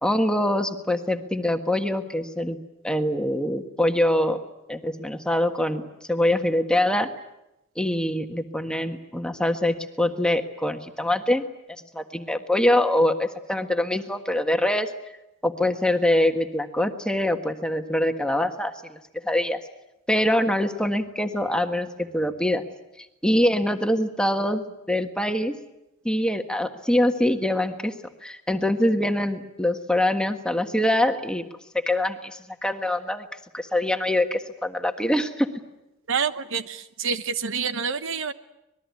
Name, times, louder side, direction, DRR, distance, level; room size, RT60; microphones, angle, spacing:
voice 1, 0.0-2.6 2.8-4.4 4.7-5.8 6.1-7.1 7.8-11.4 11.7-14.9 15.4-19.6 20.1-22.6 23.2-25.5 26.0-27.9 28.2-31.4 31.7-33.3 33.5-35.5, left 1 dB, 5° left, 6 dB, 1.5 m, -24 dB
voice 2, 36.1-38.3, right 6 dB, 60° right, 11 dB, 1.0 m, -27 dB
25.5 x 21.0 x 9.5 m, 0.91 s
head